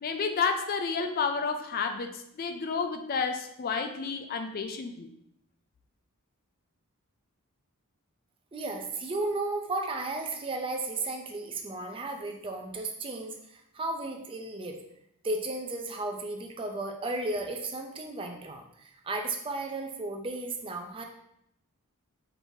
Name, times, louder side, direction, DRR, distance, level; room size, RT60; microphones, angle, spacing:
voice 1, 0.0-5.1, left 5 dB, 45° left, 6 dB, 0.3 m, -31 dB
voice 2, 8.5-14.8 15.2-21.0, right 2 dB, 25° right, 3 dB, 0.4 m, -34 dB
5.1 x 3.0 x 2.7 m, 0.75 s
head